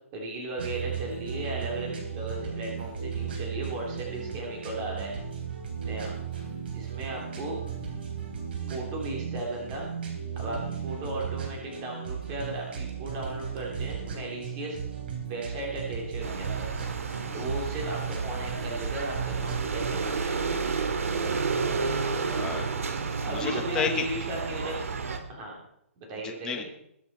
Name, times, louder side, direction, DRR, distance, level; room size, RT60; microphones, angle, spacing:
voice 1, 0.1-5.1 5.8-6.1 6.7-7.6 8.7-9.9 10.3-14.8 15.2-16.7 17.3-20.5 23.2-24.8 25.3-25.5 26.0-26.7, right 2 dB, 25° right, -1 dB, 3.4 m, -36 dB
sound 1, 0.6-20.0, right 7 dB, 45° right, 3.6 m, -36 dB
sound 2, 16.2-25.2, right 4 dB, 75° right, 1.9 m, -31 dB
voice 2, 21.7-24.1 26.2-26.7, left 7 dB, 10° left, 4 dB, 0.9 m, -34 dB
21.0 x 7.9 x 4.4 m, 0.73 s
hypercardioid pair, 170°, 7 cm